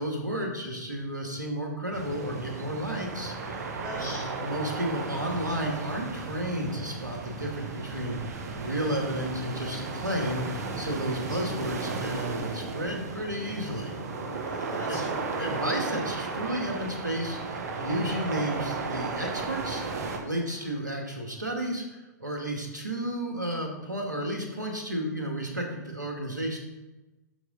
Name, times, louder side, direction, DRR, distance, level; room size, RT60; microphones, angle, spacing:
voice 1, 0.0-3.7 3.9-13.9 14.9-15.0 15.4-19.8 20.2-26.6, right 1 dB, 85° right, 1 dB, 2.0 m, -32 dB
sound 1, 1.9-20.2, right 4 dB, 60° right, 1.4 m, -35 dB
voice 2, 3.8-4.3 10.8-10.9 11.3-11.4 14.4-15.4 20.6-20.7, left 1 dB, 85° left, -7 dB, 2.9 m, -42 dB
12.0 x 4.8 x 4.0 m, 1.1 s
figure-of-eight pair, 105°, 10 cm